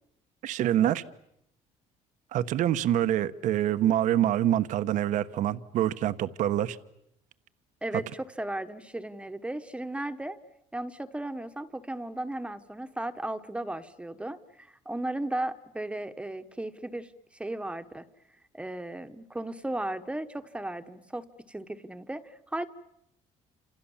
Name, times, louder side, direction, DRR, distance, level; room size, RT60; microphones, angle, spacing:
voice 1, 0.4-1.0 2.3-6.8, right 12 dB, 65° right, 1.2 m, -26 dB
voice 2, 7.8-10.4 10.7-18.0 18.5-22.7, right 1 dB, 10° right, 1.3 m, -35 dB
29.0 x 28.0 x 7.3 m
cardioid pair, 120°, 14 cm